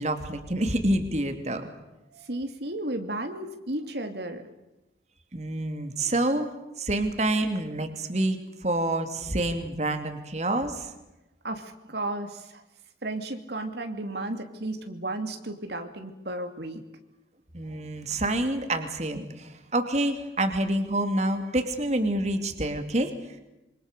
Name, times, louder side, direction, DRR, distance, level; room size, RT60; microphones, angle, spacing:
voice 1, 0.0-1.7 5.3-10.9 17.5-23.1, right 1 dB, 40° right, 7 dB, 2.7 m, -27 dB
voice 2, 2.1-4.4 11.4-12.6 13.0-16.8, right 1 dB, 70° right, 6 dB, 2.7 m, -34 dB
27.0 x 25.0 x 6.8 m, 0.96 s
head